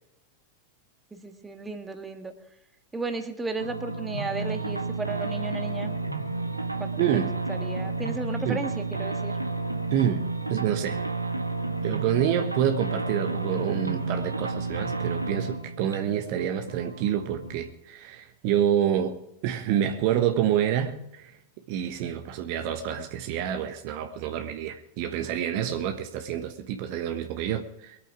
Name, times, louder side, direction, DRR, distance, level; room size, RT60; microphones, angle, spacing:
voice 1, 1.1-2.3 2.9-6.0 6.8-9.3, right 3 dB, 10° right, 1.6 m, -34 dB
sound 1, 3.6-17.7, right 3 dB, 85° right, 1.2 m, -31 dB
voice 2, 7.0-7.3 8.4-8.6 9.9-10.2 10.5-11.0 11.8-21.3 21.7-28.0, right 10 dB, 45° right, 1.1 m, -27 dB
23.5 x 8.6 x 4.8 m
figure-of-eight pair, 90°, 0 cm